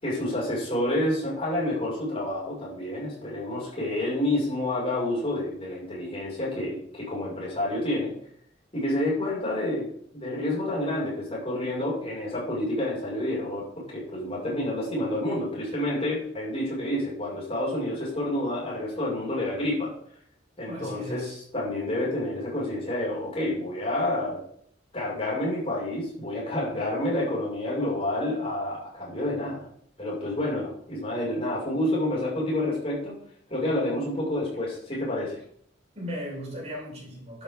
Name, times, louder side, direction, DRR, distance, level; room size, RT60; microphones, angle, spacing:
voice 1, 0.0-8.1 8.7-9.9 10.1-19.9 20.6-24.4 24.9-29.7 30.0-33.1 33.5-35.4, left 1 dB, 35° left, -5 dB, 6.2 m, -29 dB
voice 2, 20.6-21.3 35.9-37.4, equal, 35° right, -4 dB, 5.5 m, -36 dB
12.0 x 10.5 x 3.9 m, 0.64 s
head